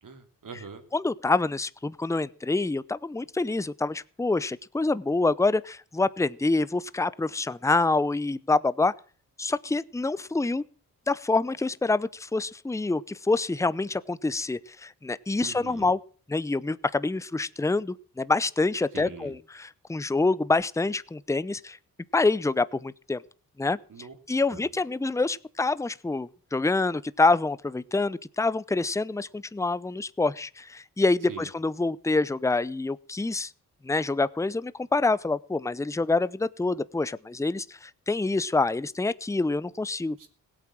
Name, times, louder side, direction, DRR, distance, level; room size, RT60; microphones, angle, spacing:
voice 1, 0.0-0.8 15.4-15.9 18.9-19.4 23.9-24.1 24.5-24.7 31.3-31.5 40.2-40.3, right 5 dB, 60° right, 3.1 m, -43 dB
voice 2, 0.9-8.9 9.4-10.6 11.1-16.0 16.3-21.8 22.1-23.2 23.6-23.8 24.3-33.5 33.8-40.2, left 3 dB, 10° left, 0.7 m, -26 dB
16.5 x 8.6 x 7.5 m
cardioid pair, 55°, 35 cm